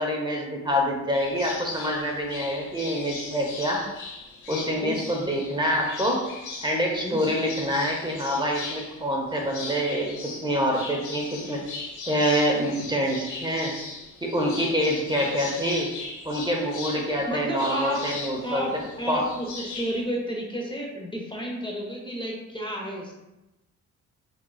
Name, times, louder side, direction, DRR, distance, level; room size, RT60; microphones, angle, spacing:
voice 1, 0.0-3.8 4.5-6.3 6.6-11.6 12.1-13.7 14.2-15.9 16.2-18.7 19.1-19.2, equal, 15° right, 0 dB, 0.8 m, -26 dB
sound 1, 1.1-20.0, left 3 dB, 75° left, 1.2 m, -39 dB
voice 2, 4.5-5.0 7.0-7.2 17.3-18.0 18.4-18.7 19.0-23.1, equal, 15° left, -1 dB, 0.7 m, -31 dB
4.5 x 3.6 x 2.3 m, 0.97 s
cardioid pair, 90°, 30 cm